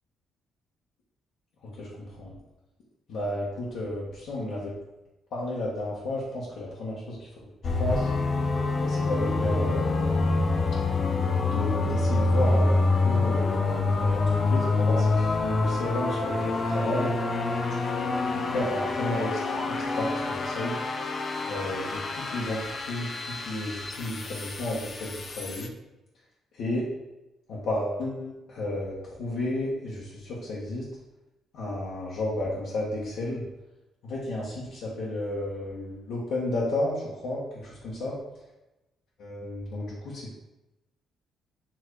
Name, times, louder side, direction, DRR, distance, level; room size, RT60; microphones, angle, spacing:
voice 1, 1.6-2.3 3.1-4.7 5.3-7.5 7.8-8.1 8.8-10.4 11.5-17.1 17.7-17.8 18.3-20.8 21.5-25.7 26.5-26.9 27.5-30.9 31.5-33.5 34.0-38.2 39.2-40.4, left 1 dB, 80° left, -8 dB, 1.7 m, -32 dB
sound 1, 7.6-25.7, left 3 dB, 45° left, 0.8 m, -26 dB
7.7 x 3.2 x 4.9 m, 0.99 s
cardioid pair, 90°, 0 cm